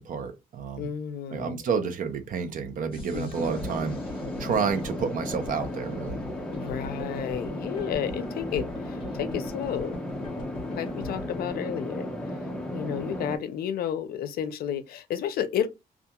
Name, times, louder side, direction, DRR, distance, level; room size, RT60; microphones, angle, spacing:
voice 1, 0.0-0.9 1.3-4.0 4.4-6.2, right 6 dB, 60° right, 0.6 m, -30 dB
voice 2, 0.8-1.6 3.1-3.5 6.5-10.0 10.8-12.1 12.7-15.7, left 9 dB, 85° left, 0.5 m, -32 dB
sound 1, 2.9-11.5, left 3 dB, 35° left, 0.9 m, -42 dB
sound 2, 3.3-13.4, left 1 dB, 5° left, 0.5 m, -35 dB
2.3 x 2.3 x 2.8 m
wide cardioid pair, 160°, 15 cm